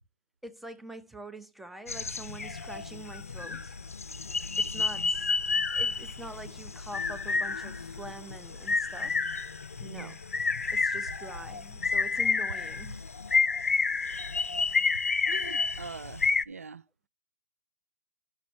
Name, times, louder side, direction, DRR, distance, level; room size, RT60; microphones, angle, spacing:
voice 1, 0.4-3.7 4.6-5.3 5.7-9.2 9.8-10.2 10.7-13.0, right 2 dB, ahead, 0.7 m, -45 dB
sound 1, 1.9-16.4, left 4 dB, 90° left, 0.5 m, -30 dB
voice 2, 9.8-10.2 15.3-16.8, right 5 dB, 85° right, 0.4 m, -43 dB
11.5 x 6.3 x 3.1 m
hypercardioid pair, 135°, 8 cm